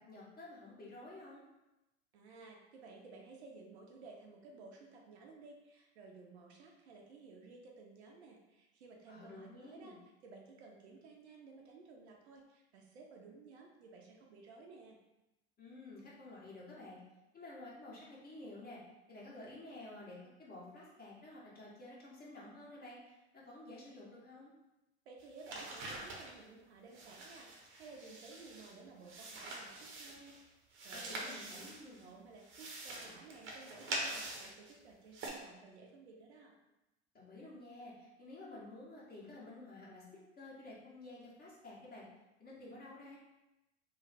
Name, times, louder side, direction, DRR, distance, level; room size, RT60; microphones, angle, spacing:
voice 1, 0.1-1.4 9.1-10.0 15.6-17.0 17.3-18.8 19.1-24.5 30.9-32.0 37.1-40.0 40.3-42.0 42.4-43.2, left 2 dB, 25° left, -7 dB, 1.4 m, -51 dB
voice 2, 2.1-15.0 25.1-27.5 27.8-30.6 30.8-31.7 32.0-36.6, right 3 dB, 75° right, 0 dB, 0.8 m, -55 dB
sound 1, 25.2-26.4 26.9-28.8 29.0-30.4 30.7-32.0 32.4-34.8 35.1-35.3, right 2 dB, 35° right, 0.9 m, -45 dB
3.1 x 2.1 x 4.2 m, 0.96 s
hypercardioid pair, 85°, 33 cm